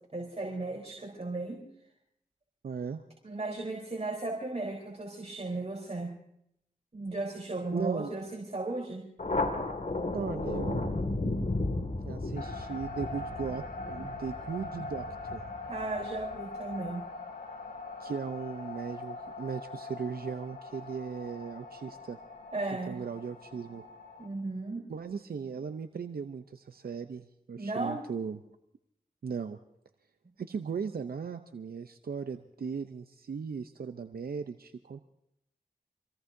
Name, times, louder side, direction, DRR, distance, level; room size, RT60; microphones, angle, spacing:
voice 1, 0.1-1.6 3.2-6.1 6.9-9.1 15.7-17.0 22.5-23.0 24.2-24.9 27.6-28.0, right 2 dB, 45° right, -1 dB, 3.8 m, -35 dB
voice 2, 2.6-3.0 7.7-8.1 10.1-11.0 12.1-15.4 18.0-22.2 22.9-23.8 24.9-28.4 29.2-29.6 30.4-35.0, right 6 dB, 80° right, 8 dB, 0.6 m, -37 dB
Thunder, 9.2-16.2, left 2 dB, 55° left, 2.1 m, -34 dB
sound 1, 12.3-24.3, left 3 dB, 90° left, 2.7 m, -42 dB
26.0 x 18.0 x 2.7 m, 0.77 s
cardioid pair, 45°, 16 cm